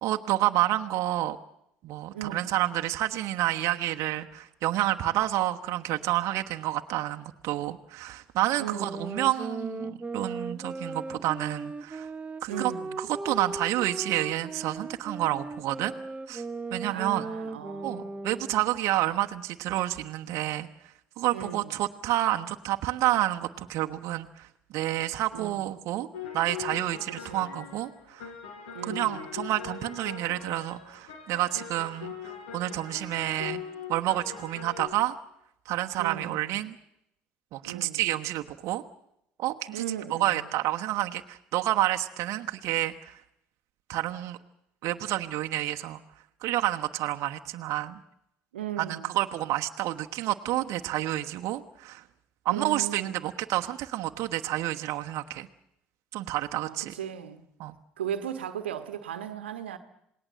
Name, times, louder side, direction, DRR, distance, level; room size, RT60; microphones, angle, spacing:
voice 1, 0.0-1.4 1.8-12.1 12.4-12.7 13.0-15.9 16.3-16.4 16.7-17.2 17.8-20.7 21.2-24.5 24.7-26.1 26.3-28.3 28.9-33.6 33.9-35.1 35.6-36.8 37.5-38.8 39.4-39.8 40.1-43.2 43.9-44.4 44.8-46.0 46.4-48.0 48.8-52.0 52.4-55.5 56.1-56.9 57.6-57.7, right 15 dB, 60° right, 1.2 m, -29 dB
voice 2, 2.1-2.6 8.6-9.2 12.5-13.0 16.9-18.1 21.3-21.8 25.3-25.9 27.3-27.5 28.7-29.3 36.0-36.6 37.6-38.1 39.7-40.5 48.5-49.2 52.5-53.2 56.5-57.4 58.0-59.8, right 9 dB, 85° right, 1.3 m, -37 dB
sound 1, 8.7-18.7, right 3 dB, 20° right, 1.1 m, -37 dB
sound 2, 26.1-34.9, left 7 dB, 75° left, 4.6 m, -41 dB
27.5 x 19.5 x 7.6 m
hypercardioid pair, 60°, 6 cm